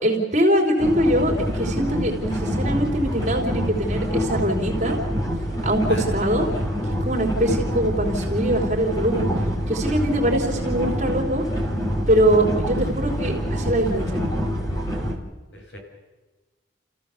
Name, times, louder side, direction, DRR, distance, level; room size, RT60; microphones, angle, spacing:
voice 1, 0.0-5.0 5.6-6.5 7.0-9.3 9.7-11.4 12.1-14.2, right 1 dB, 40° right, -1 dB, 3.2 m, -22 dB
sound 1, 0.8-15.1, equal, 20° left, 2.7 m, -26 dB
voice 2, 5.9-6.7 15.5-15.8, equal, 75° left, 2 dB, 4.8 m, -37 dB
30.0 x 15.0 x 6.9 m, 1.2 s
head